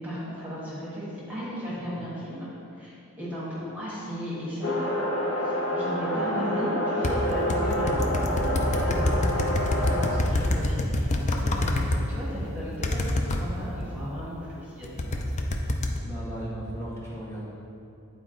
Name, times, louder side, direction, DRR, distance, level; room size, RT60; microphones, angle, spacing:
voice 1, 0.0-15.2, equal, 5° right, -9 dB, 1.3 m, -35 dB
sound 1, 4.6-10.2, equal, 65° left, 1.2 m, -28 dB
sound 2, 7.0-12.0 12.8-13.4 14.8-16.0, left 1 dB, 30° left, 0.5 m, -26 dB
voice 2, 16.0-17.4, right 1 dB, 10° left, -7 dB, 1.5 m, -37 dB
9.3 x 4.4 x 3.8 m, 2.8 s
head